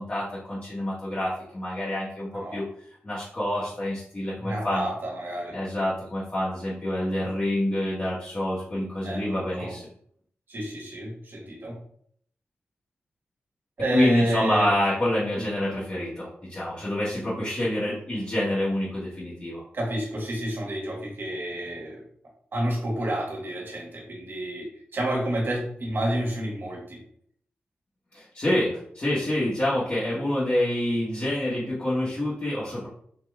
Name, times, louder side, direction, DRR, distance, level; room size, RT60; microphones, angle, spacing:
voice 1, 0.0-2.6 3.0-4.8 5.5-9.8 13.9-19.6 28.1-32.9, left 1 dB, 40° left, -9 dB, 1.6 m, -27 dB
voice 2, 4.4-5.6 9.0-9.7 10.5-11.7 13.8-14.7 15.4-15.5 19.7-22.0 22.5-27.0, right 1 dB, 55° right, -1 dB, 1.6 m, -30 dB
4.3 x 3.0 x 3.5 m, 0.65 s
cardioid pair, 65°, 4 cm